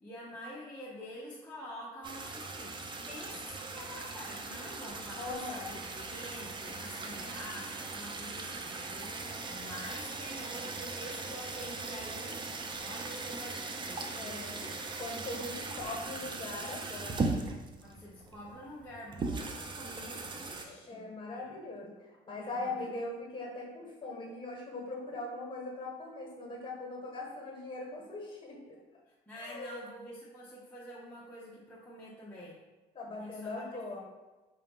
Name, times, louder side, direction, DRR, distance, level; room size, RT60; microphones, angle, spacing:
voice 1, 0.0-2.8 3.1-12.4 12.8-14.7 15.2-15.5 17.8-21.1 21.3-21.7 22.4-23.0 29.1-32.6 33.1-33.8, equal, 10° left, -7 dB, 0.8 m, -47 dB
sound 1, 2.0-20.6, right 3 dB, 30° right, 0.5 m, -39 dB
voice 2, 5.2-5.8 14.1-14.6 15.0-17.5 20.6-28.8 29.3-29.9 32.9-34.1, left 2 dB, 30° left, -2 dB, 1.4 m, -41 dB
4.7 x 2.8 x 3.5 m, 1.2 s
cardioid pair, 110°, 17 cm